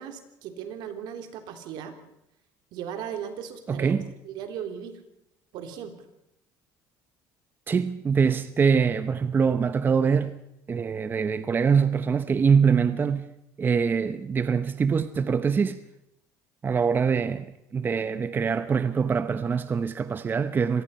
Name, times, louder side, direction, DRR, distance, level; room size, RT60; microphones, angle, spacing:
voice 1, 0.0-2.0 2.7-3.9 4.2-5.0 5.5-5.9 17.0-17.3, right 8 dB, 70° right, 3.3 m, -37 dB
voice 2, 3.7-4.0 7.7-10.4 10.7-13.3 13.6-15.8 16.6-17.4 17.7-20.8, right 6 dB, 25° right, 0.8 m, -24 dB
25.5 x 19.5 x 5.6 m
cardioid pair, 125°, 8 cm